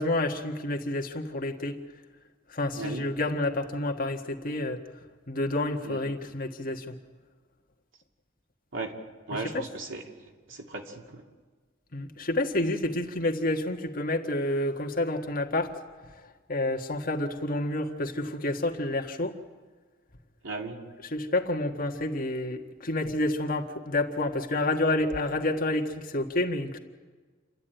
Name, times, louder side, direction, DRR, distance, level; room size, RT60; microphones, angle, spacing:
voice 1, 0.0-1.8 2.5-4.8 5.3-6.9 9.3-9.7 11.9-15.7 16.5-19.3 21.1-26.8, left 2 dB, 50° left, 2 dB, 1.6 m, -29 dB
voice 2, 2.8-3.1 5.8-6.0 8.7-9.0 9.3-10.0 10.5-11.2 20.4-20.8, right 3 dB, 90° right, 1 dB, 2.6 m, -36 dB
28.5 x 12.0 x 9.1 m, 1.4 s
head